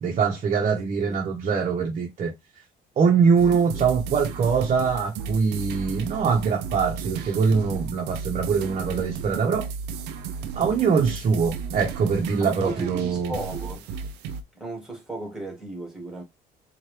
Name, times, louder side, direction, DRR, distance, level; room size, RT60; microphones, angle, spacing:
voice 1, 0.0-2.3 3.0-9.7 10.5-13.4, right 5 dB, 40° right, 1.0 m, -23 dB
sound 1, 3.4-14.4, right 6 dB, 80° right, 0.6 m, -34 dB
voice 2, 12.4-13.9 14.5-16.2, right 2 dB, 5° right, 2.2 m, -35 dB
4.5 x 2.5 x 3.3 m
cardioid pair, 110°, 17 cm